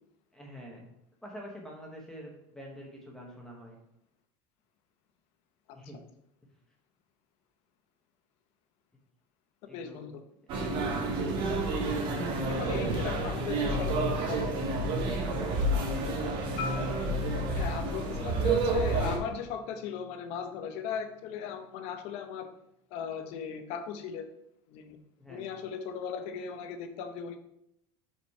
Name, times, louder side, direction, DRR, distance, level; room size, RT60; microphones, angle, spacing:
voice 1, 0.3-0.9 1.2-3.8 5.7-6.0 9.6-10.0 10.7-11.4 12.8-13.5 15.0-16.6 25.2-25.5, equal, 5° left, -1 dB, 1.0 m, -46 dB
voice 2, 9.7-10.2 12.5-14.0 14.3-14.5 17.5-22.5 22.9-24.3 24.7-25.0 25.3-27.4, left 7 dB, 50° left, 7 dB, 0.8 m, -38 dB
sound 1, 10.5-19.2, right 2 dB, 40° right, 1.1 m, -29 dB
Marimba xylophone, 16.6-20.7, left 3 dB, 70° left, 1.4 m, -43 dB
5.2 x 5.1 x 4.7 m, 0.77 s
cardioid pair, 175°, 14 cm